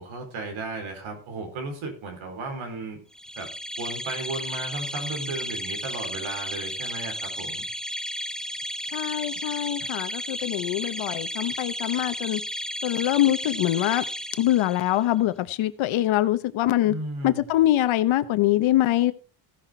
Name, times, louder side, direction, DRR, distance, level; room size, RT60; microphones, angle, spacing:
voice 1, 0.0-3.0 3.4-3.5 3.8-7.6 16.8-17.4, right 2 dB, 85° right, 4.3 m, -35 dB
sound 1, 3.1-15.0, equal, ahead, 0.4 m, -33 dB
voice 2, 8.9-12.4 12.8-14.0 14.4-16.9 17.2-19.1, left 14 dB, 80° left, 1.0 m, -23 dB
16.0 x 5.9 x 4.5 m
cardioid pair, 105°, 47 cm